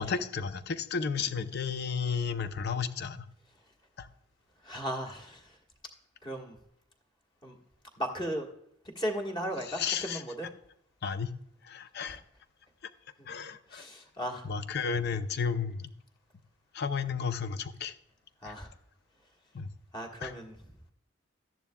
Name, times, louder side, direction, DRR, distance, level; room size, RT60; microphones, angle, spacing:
voice 1, 0.0-3.2 4.0-4.1 9.6-10.2 11.0-11.4 11.6-12.2 13.3-13.8 14.4-15.9 16.7-17.9 18.4-18.5 19.5-19.7 20.2-20.3, left 6 dB, 55° left, 11 dB, 0.6 m, -33 dB
voice 2, 4.6-5.6 6.2-6.6 7.4-7.6 8.0-8.5 8.9-10.5 12.0-12.2 13.7-14.4 18.4-18.7 19.9-20.5, equal, 25° left, 2 dB, 1.5 m, -36 dB
13.5 x 10.5 x 2.3 m, 0.75 s
head